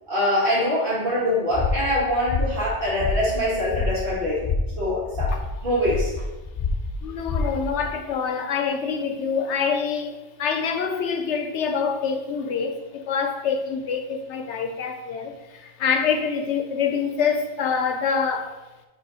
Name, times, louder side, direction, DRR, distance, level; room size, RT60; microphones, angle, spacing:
voice 1, 0.1-4.4 4.8-5.3 5.6-6.1, left 1 dB, 50° right, 2.2 m, -23 dB
sound 1, 1.5-7.9, left 3 dB, 45° left, 0.5 m, -28 dB
voice 2, 7.0-18.6, left 6 dB, 85° left, 1.0 m, -26 dB
5.1 x 3.8 x 4.9 m
omnidirectional pair, 1.2 m